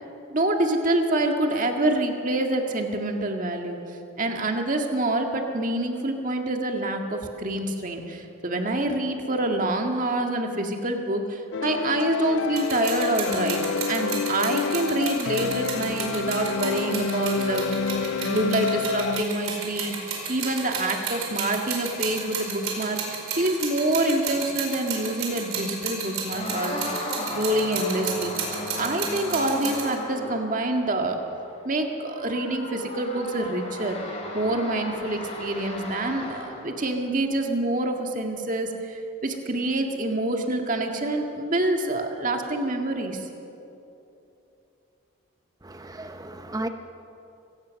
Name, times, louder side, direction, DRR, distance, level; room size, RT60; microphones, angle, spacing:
voice 1, 0.3-3.8 4.2-17.9 18.2-27.1 27.4-28.3 28.7-31.2 31.6-34.0 34.3-43.2, right 1 dB, 40° right, 3 dB, 1.9 m, -26 dB
sound 1, 11.5-19.2, left 5 dB, 60° left, 0.4 m, -28 dB
sound 2, 12.6-29.9, right 6 dB, 85° right, 5.0 m, -33 dB
sound 3, 26.3-36.8, left 1 dB, 30° left, 3.8 m, -36 dB
voice 2, 45.6-46.7, right 1 dB, 15° right, 7 dB, 0.8 m, -34 dB
24.0 x 17.5 x 6.5 m, 2.9 s
head